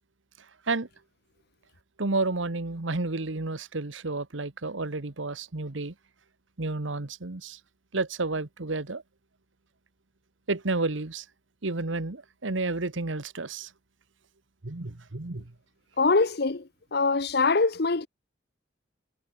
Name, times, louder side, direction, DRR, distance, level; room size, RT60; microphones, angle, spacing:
voice 1, 2.0-5.9 6.6-7.6 7.9-9.0 10.5-11.2 11.6-13.7 14.6-15.5, right 3 dB, 75° right, 1.3 m, -31 dB
voice 2, 16.0-16.6 16.9-18.1, left 3 dB, 55° left, 0.9 m, -23 dB
head